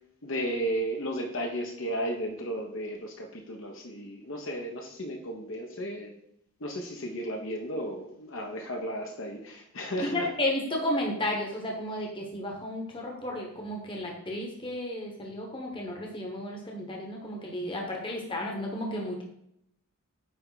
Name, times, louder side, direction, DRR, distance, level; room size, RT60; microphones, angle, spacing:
voice 1, 0.2-6.1 6.6-10.3, right 1 dB, 55° left, 2 dB, 1.0 m, -34 dB
voice 2, 10.0-19.2, left 1 dB, 20° left, 0 dB, 1.1 m, -33 dB
9.2 x 3.4 x 4.0 m, 0.76 s
head